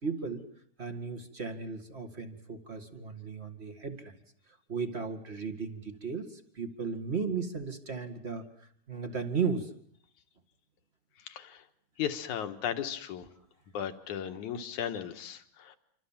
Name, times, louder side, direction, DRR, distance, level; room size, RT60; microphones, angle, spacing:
voice 1, 0.0-0.4 0.8-4.1 4.7-9.7, right 5 dB, 25° right, 7 dB, 1.7 m, -35 dB
voice 2, 11.2-11.6 12.0-13.3 13.7-15.8, left 9 dB, 70° left, 8 dB, 2.9 m, -36 dB
27.5 x 25.0 x 7.4 m, 0.65 s
omnidirectional pair, 3.7 m